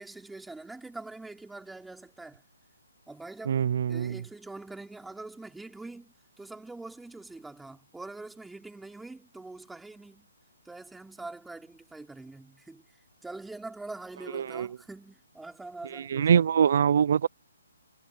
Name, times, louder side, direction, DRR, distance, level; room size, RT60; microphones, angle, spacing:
voice 1, 0.0-2.4 3.1-10.3 10.6-12.9 13.2-16.4, right 2 dB, 5° right, 5.0 m, -44 dB
voice 2, 3.5-4.2 14.3-14.7 15.9-17.3, right 8 dB, 55° right, 0.5 m, -24 dB
hypercardioid pair, 150°, 0 cm